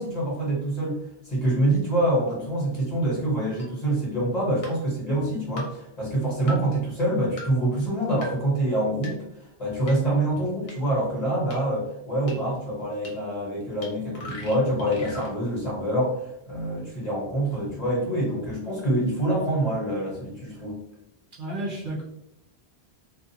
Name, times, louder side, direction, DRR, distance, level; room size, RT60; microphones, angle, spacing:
voice 1, 0.0-9.2 9.6-20.8, right 1 dB, 40° left, -5 dB, 1.1 m, -26 dB
voice 2, 1.5-1.8 21.4-22.0, right 1 dB, 60° right, -3 dB, 0.6 m, -32 dB
sound 1, 3.6-3.7 4.6-4.7 5.6-5.7 6.5-6.6 7.4-7.5 8.2-8.3 9.0-9.1 9.9-10.0 10.7-10.8 11.5-11.6 12.3-12.4 13.0-13.1 13.8-13.9 14.1-15.3, left 1 dB, 65° left, 1.0 m, -38 dB
2.4 x 2.4 x 2.6 m, 0.80 s
omnidirectional pair, 1.1 m